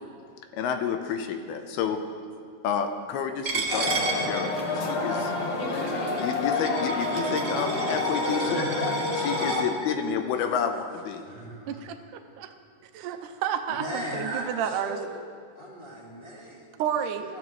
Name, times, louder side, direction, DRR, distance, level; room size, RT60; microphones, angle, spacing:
voice 1, 0.5-2.0 2.6-5.3 6.2-8.6 9.2-11.2, left 7 dB, 80° left, 6 dB, 2.8 m, -30 dB
Coin (dropping), 3.4-9.6, right 4 dB, 65° right, 1.1 m, -34 dB
sound 1, 3.7-9.6, left 3 dB, 60° left, 1.9 m, -28 dB
voice 2, 8.4-9.5 11.2-12.0 13.0-13.1 13.7-15.1 15.5-16.7 17.2-17.4, right 1 dB, 20° left, -7 dB, 1.5 m, -37 dB
voice 3, 11.7-12.5 12.9-15.0 16.8-17.4, right 9 dB, 80° right, 7 dB, 1.9 m, -31 dB
21.0 x 13.5 x 3.1 m, 2.2 s
omnidirectional pair, 4.4 m